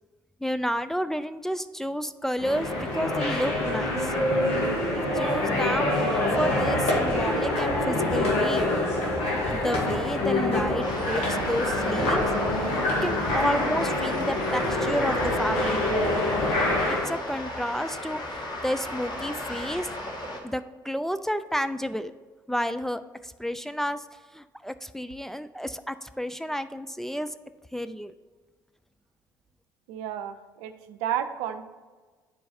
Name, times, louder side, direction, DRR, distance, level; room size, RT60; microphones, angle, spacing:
voice 1, 0.4-4.1 4.9-8.7 9.5-12.2 12.9-15.8 16.9-19.9 20.4-22.1 22.5-24.0 24.3-27.3 27.7-28.1, equal, 5° left, 10 dB, 0.4 m, -31 dB
sound 1, 2.4-17.0, left 1 dB, 65° left, 2.2 m, -25 dB
sound 2, 10.8-20.4, left 1 dB, 40° left, 1.7 m, -35 dB
voice 2, 29.9-31.6, right 10 dB, 70° right, 9 dB, 0.6 m, -32 dB
9.6 x 4.6 x 4.3 m, 1.4 s
hypercardioid pair, 55°, 11 cm